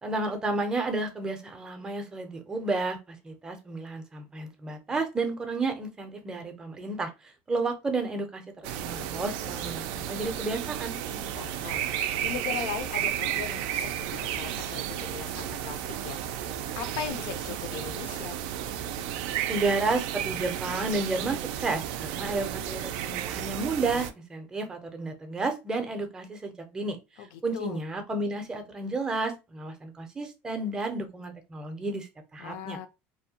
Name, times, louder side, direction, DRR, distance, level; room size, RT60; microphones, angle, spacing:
voice 1, 0.0-8.4 8.8-11.0 19.5-27.0 27.4-32.8, right 3 dB, 15° right, 0.5 m, -31 dB
sound 1, 8.6-24.1, right 10 dB, 80° right, 0.3 m, -33 dB
voice 2, 11.1-11.8 12.2-16.2 16.8-18.4 27.2-27.8 32.4-32.9, left 8 dB, 75° left, 0.5 m, -38 dB
2.7 x 2.1 x 2.8 m
cardioid pair, 155°, 5 cm